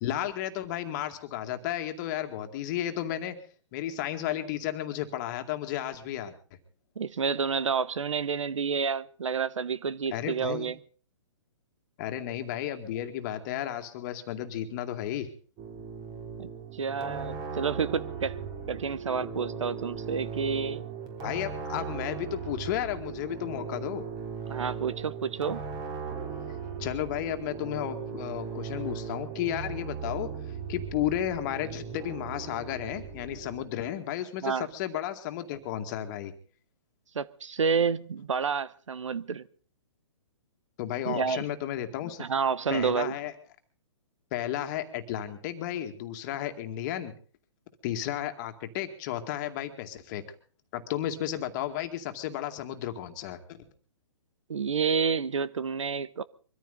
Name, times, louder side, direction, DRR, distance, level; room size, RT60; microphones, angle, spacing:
voice 1, 0.0-3.4 3.7-6.3 10.1-10.7 12.0-15.3 21.2-24.1 26.8-36.3 40.8-42.2 42.7-43.3 44.3-47.1 47.8-50.2 50.7-53.6, left 11 dB, 40° left, 2.1 m, -33 dB
voice 2, 7.0-10.7 16.4-18.4 18.7-20.9 24.5-25.6 34.4-34.7 37.1-39.5 41.0-41.4 42.2-43.2 54.5-56.2, right 6 dB, 80° right, 1.0 m, -29 dB
sound 1, 15.6-33.6, right 6 dB, 25° right, 3.5 m, -38 dB
23.5 x 14.0 x 4.0 m
hypercardioid pair, 135°, 16 cm